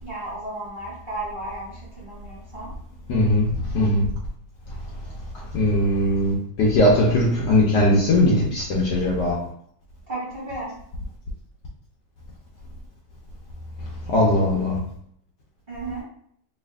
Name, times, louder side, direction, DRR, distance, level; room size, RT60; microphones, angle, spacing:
voice 1, 0.0-2.7 10.1-10.7 15.7-16.0, right 2 dB, 30° right, -8 dB, 1.3 m, -34 dB
voice 2, 3.1-4.0 5.5-9.4 14.1-14.8, left 1 dB, 65° left, -3 dB, 1.1 m, -19 dB
3.3 x 2.8 x 3.4 m, 0.67 s
omnidirectional pair, 2.3 m